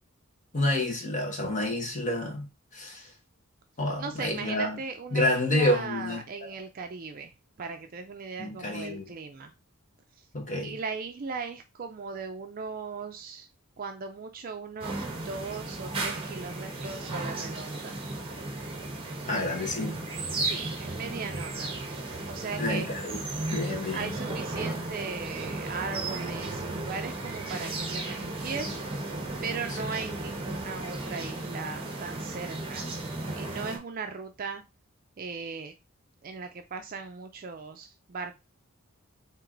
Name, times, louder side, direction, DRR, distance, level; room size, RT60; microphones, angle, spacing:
voice 1, 0.5-2.5 2.7-3.1 3.8-4.8 5.1-6.5 8.4-9.0 10.3-10.8 19.3-20.0 22.6-23.2 23.5-24.1, left 1 dB, 35° left, 1.3 m, -29 dB
voice 2, 4.0-9.5 10.2-10.3 10.6-13.5 13.8-18.0 20.4-21.8 22.3-22.9 23.9-28.8 29.4-32.8 33.3-34.6 35.2-35.7 36.2-38.3, right 5 dB, 40° right, 0.4 m, -38 dB
sound 1, 14.8-33.8, right 2 dB, 25° right, 1.0 m, -35 dB
4.5 x 3.0 x 3.8 m
head